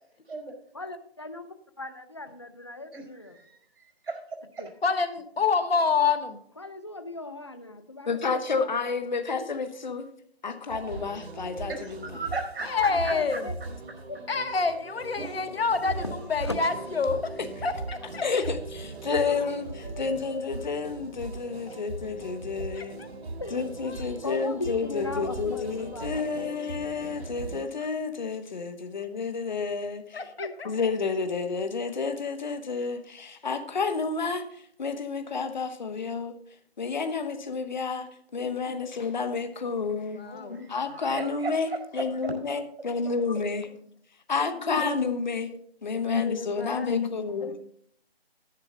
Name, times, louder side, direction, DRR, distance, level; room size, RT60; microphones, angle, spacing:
voice 1, 0.7-3.4 4.6-4.7 6.6-8.7 12.6-14.6 15.0-15.6 16.0-16.6 19.0-19.5 19.8-20.4 23.4-23.6 24.2-26.4 30.2-30.6 40.2-41.0, left 2 dB, 30° left, 10 dB, 0.5 m, -39 dB
voice 2, 2.9-4.7 11.7-13.4 40.5-42.3, right 3 dB, 65° right, 2 dB, 5.1 m, -37 dB
voice 3, 4.8-6.4 12.7-13.4 14.3-16.0 16.3-18.2 22.8-23.1 23.9-24.2 26.4-26.5 30.1-30.5 38.4-38.5 40.1-40.6 45.9-46.9, left 5 dB, 70° left, 8 dB, 1.4 m, -28 dB
voice 4, 8.1-10.1 10.4-12.0 18.2-23.0 23.5-30.2 30.6-36.3 36.8-38.1 38.3-40.2 40.5-41.7 41.9-43.7 44.3-45.5 45.8-47.6, left 4 dB, 45° left, 9 dB, 1.1 m, -30 dB
sound 1, 10.7-27.6, right 3 dB, 85° right, 1.1 m, -39 dB
10.5 x 9.9 x 4.0 m, 0.65 s
hypercardioid pair, 170°, 31 cm